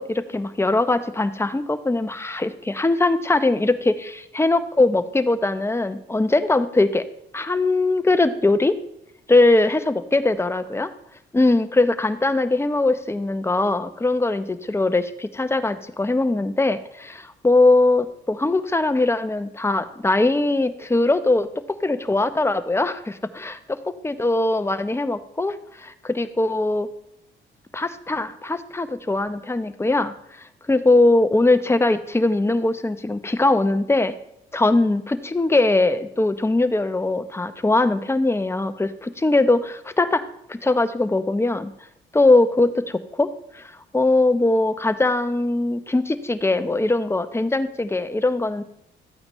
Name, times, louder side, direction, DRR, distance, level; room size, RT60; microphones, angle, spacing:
voice 1, 0.0-7.0 7.3-8.8 9.3-10.9 11.3-21.5 21.8-23.6 24.0-26.9 27.7-30.1 30.7-34.1 34.5-41.7 42.1-43.3 43.5-43.7 43.9-48.6, left 2 dB, 10° left, 11 dB, 0.7 m, -21 dB
13.5 x 8.7 x 3.1 m, 0.76 s
cardioid pair, 90°, 20 cm